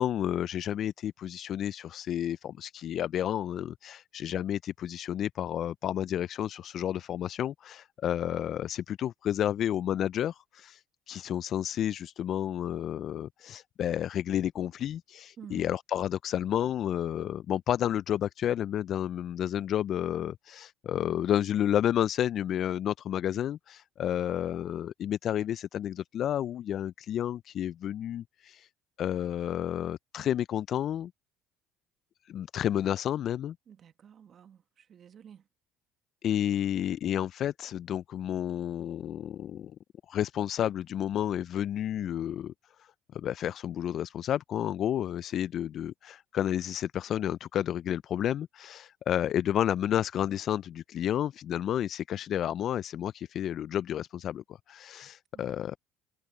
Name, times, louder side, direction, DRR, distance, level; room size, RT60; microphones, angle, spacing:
voice 1, 0.0-28.7 29.0-31.1 32.3-33.6 36.2-39.7 40.1-42.5 42.8-55.8, left 10 dB, 55° left, 0.4 m, -31 dB
voice 2, 15.4-15.7 33.7-35.4 55.3-55.6, right 8 dB, 50° right, 1.5 m, -50 dB
hypercardioid pair, 70°, 0 cm